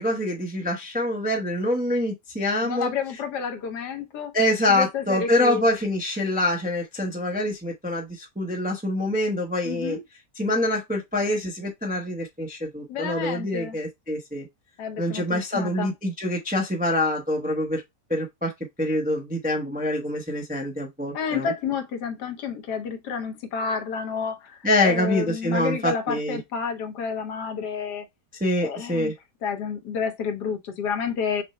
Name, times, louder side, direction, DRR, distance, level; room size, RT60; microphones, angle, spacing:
voice 1, 0.0-2.9 4.3-10.0 10.4-14.5 15.0-17.8 18.1-18.5 18.8-21.5 24.6-26.4 28.4-29.1, left 1 dB, 10° right, 0.4 m, -25 dB
voice 2, 2.6-4.3 4.7-5.6 9.6-10.0 12.9-13.8 14.8-15.9 21.1-28.1 28.6-29.1 29.4-31.4, left 6 dB, 80° left, 1.4 m, -30 dB
6.0 x 2.1 x 4.1 m
omnidirectional pair, 1.8 m